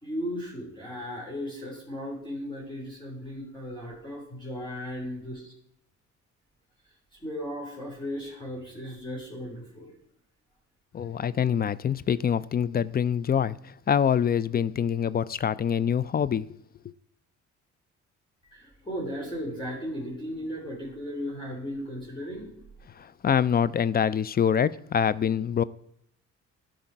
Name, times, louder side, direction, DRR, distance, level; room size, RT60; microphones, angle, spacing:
voice 1, 0.0-5.5 7.2-9.9 18.5-22.5, equal, 15° left, 3.4 m, -36 dB
voice 2, 10.9-16.5 23.0-25.6, left 8 dB, 30° left, 0.4 m, -25 dB
12.0 x 5.0 x 4.4 m
cardioid pair, 90°, 30 cm